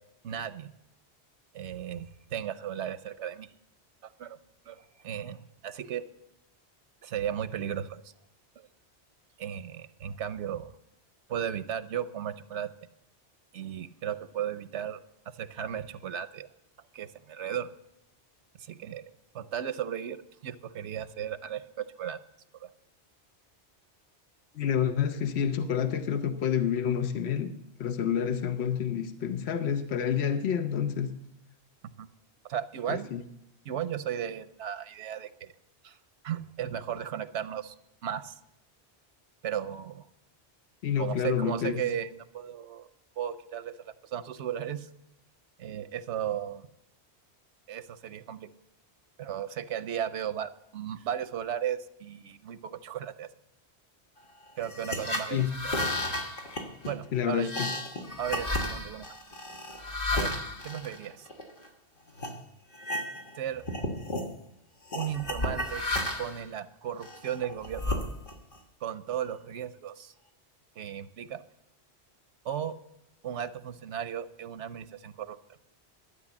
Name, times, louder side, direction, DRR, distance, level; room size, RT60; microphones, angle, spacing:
voice 1, 0.2-0.7 1.5-3.5 4.0-4.4 4.7-6.1 7.0-8.1 9.4-10.7 11.3-12.7 13.5-15.0 15.3-16.5 16.9-17.7 18.6-19.0 19.3-22.2 22.6-22.7 32.0-32.1 32.4-33.1 33.6-35.5 35.8-36.0 36.2-37.8 38.0-38.4 39.4-40.1 41.0-42.9 43.2-44.9 45.6-46.7 47.7-48.5 49.2-53.3 54.6-55.8 56.8-57.5 58.2-59.1 60.1-60.3 60.6-61.3 63.4-63.6 64.9-65.8 66.2-68.0 68.8-70.1 70.8-71.4 72.4-72.8 73.2-75.4, right 9 dB, 85° right, 1.0 m, -35 dB
voice 2, 24.6-31.2 32.9-33.2 40.8-41.7 55.3-55.6 57.1-57.7, left 8 dB, 70° left, 1.1 m, -29 dB
sound 1, 54.6-61.7 62.2-62.4 62.7-63.4 63.6-64.3 64.9-66.4 67.0-68.6, left 1 dB, 50° left, 1.6 m, -33 dB
12.5 x 8.5 x 7.2 m
omnidirectional pair, 1.1 m